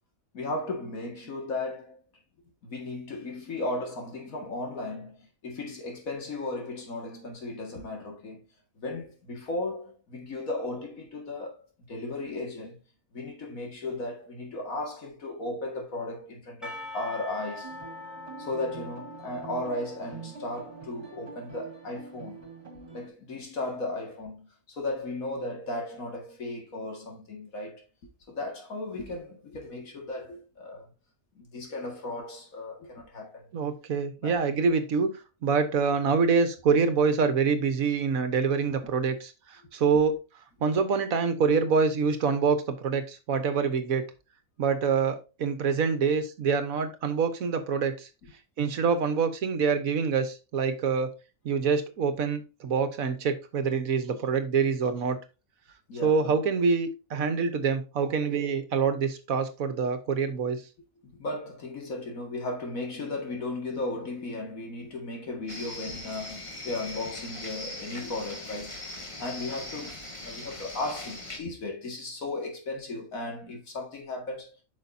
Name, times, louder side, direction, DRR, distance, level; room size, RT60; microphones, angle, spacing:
voice 1, 0.3-2.0 2.6-8.4 8.8-12.8 13.1-17.7 18.4-22.4 22.9-27.8 28.3-30.9 31.4-33.5 34.2-34.6 48.2-48.3 55.9-56.4 61.0-68.8 69.2-70.0 70.2-74.5, left 2 dB, 70° left, 2.3 m, -36 dB
Percussion / Church bell, 16.6-21.4, left 2 dB, ahead, 1.5 m, -44 dB
sound 1, 17.6-23.1, right 6 dB, 45° right, 2.3 m, -45 dB
voice 2, 33.5-35.1 35.4-40.2 40.6-44.0 44.6-48.1 48.6-51.1 51.4-55.2 56.0-60.6, right 5 dB, 70° right, 1.4 m, -26 dB
sound 2, 65.5-71.4, left 1 dB, 20° left, 1.3 m, -40 dB
8.7 x 5.9 x 2.7 m
omnidirectional pair, 1.5 m